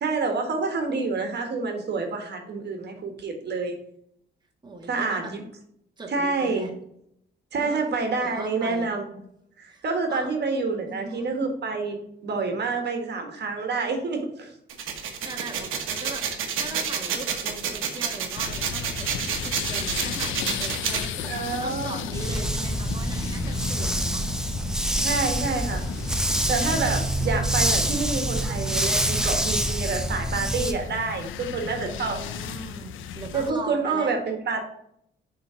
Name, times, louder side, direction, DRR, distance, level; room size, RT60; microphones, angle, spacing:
voice 1, 0.0-3.7 4.9-5.4 6.1-6.7 7.5-9.0 9.6-12.0 12.2-14.5 21.3-22.0 25.0-25.8 26.5-32.2 33.3-34.6, right 4 dB, 55° right, 4 dB, 1.6 m, -28 dB
voice 2, 4.6-5.3 6.0-6.7 7.5-7.8 8.2-8.9 9.7-10.3 10.9-11.3 14.9-24.2 31.8-34.1, right 3 dB, 20° right, 1 dB, 1.5 m, -39 dB
sound 1, 14.7-21.1, right 7 dB, 85° right, 1.2 m, -29 dB
sound 2, 18.4-33.5, left 7 dB, 80° left, 0.7 m, -35 dB
Dog, 22.1-30.7, right 1 dB, 5° right, 0.8 m, -26 dB
6.4 x 4.0 x 5.6 m, 0.72 s
cardioid pair, 90°, 20 cm